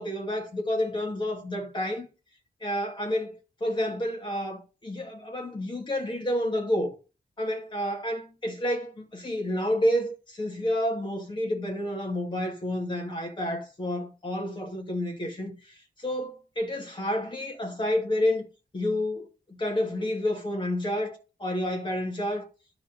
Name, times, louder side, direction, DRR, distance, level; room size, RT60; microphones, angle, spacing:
voice 1, 0.0-2.1 2.6-6.9 7.4-18.4 18.7-22.5, left 1 dB, 30° left, 2.5 m, -30 dB
12.5 x 4.4 x 5.5 m
wide cardioid pair, 150°, 17 cm